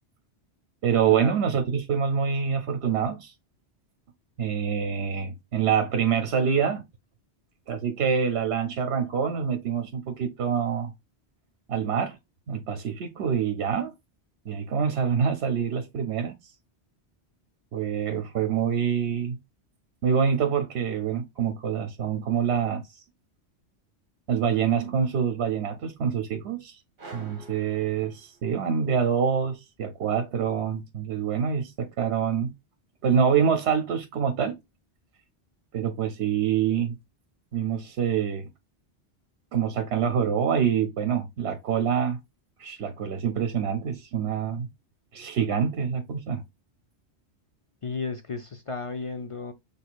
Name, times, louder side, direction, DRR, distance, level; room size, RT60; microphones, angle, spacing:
voice 1, 0.8-3.3 4.4-6.8 7.7-10.9 11.7-12.2 12.5-13.9 14.5-16.4 17.7-19.4 20.0-23.0 24.3-26.8 27.1-32.5 33.0-34.6 35.7-37.0 37.5-38.5 39.5-42.2 42.6-44.7 45.1-46.4, right 7 dB, 70° right, 1.0 m, -26 dB
sound 1, 27.0-28.7, right 3 dB, 50° right, 1.2 m, -47 dB
voice 2, 47.8-49.5, left 4 dB, 45° left, 0.4 m, -33 dB
6.3 x 3.4 x 2.3 m
omnidirectional pair, 1.1 m